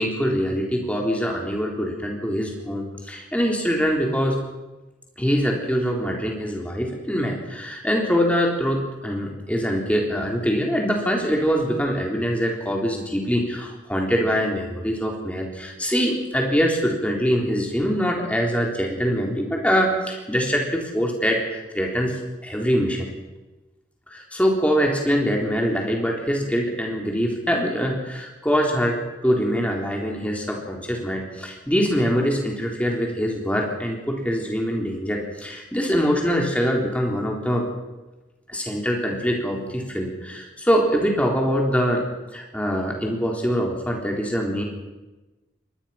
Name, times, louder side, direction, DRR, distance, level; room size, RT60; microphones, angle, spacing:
voice 1, 0.0-4.4 5.2-23.1 24.1-37.7 38.5-42.0 42.3-44.6, equal, 5° left, 0 dB, 3.8 m, -23 dB
24.0 x 20.0 x 5.9 m, 1.1 s
head